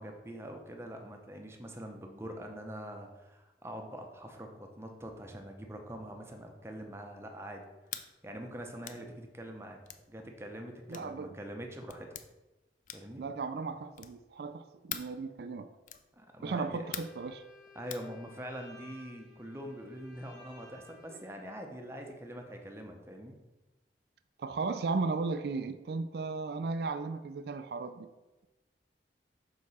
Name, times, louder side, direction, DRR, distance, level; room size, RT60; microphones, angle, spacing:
voice 1, 0.0-7.6 8.2-9.8 10.1-12.2 12.9-13.2 16.2-16.8 17.8-23.4, equal, 15° right, 0.7 m, -44 dB
sound 1, 7.9-8.1 8.8-9.0 9.8-10.1 10.9-11.1 11.9-12.3 12.8-13.2 13.9-14.2 14.9-15.2 15.8-16.1 16.9-17.2 17.9-18.1, left 10 dB, 45° left, 0.4 m, -42 dB
voice 2, 10.9-11.4 13.2-15.7 16.4-17.4 21.1-21.2 24.4-28.1, right 4 dB, 60° right, 0.3 m, -35 dB
Bowed string instrument, 16.8-21.5, left 2 dB, 75° left, 2.2 m, -56 dB
6.6 x 4.8 x 4.1 m
head